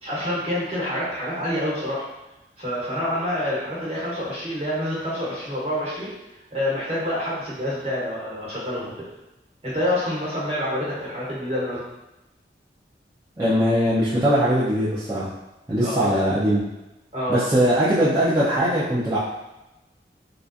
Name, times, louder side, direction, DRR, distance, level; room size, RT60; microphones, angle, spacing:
voice 1, 0.0-2.0 2.6-6.1 6.5-9.1 9.6-11.8 15.8-16.3 17.1-17.4, left 1 dB, 35° right, -7 dB, 1.2 m, -27 dB
voice 2, 13.4-15.3 15.7-16.6 17.3-19.2, equal, 20° right, -11 dB, 0.5 m, -20 dB
3.7 x 2.6 x 2.4 m, 0.99 s
head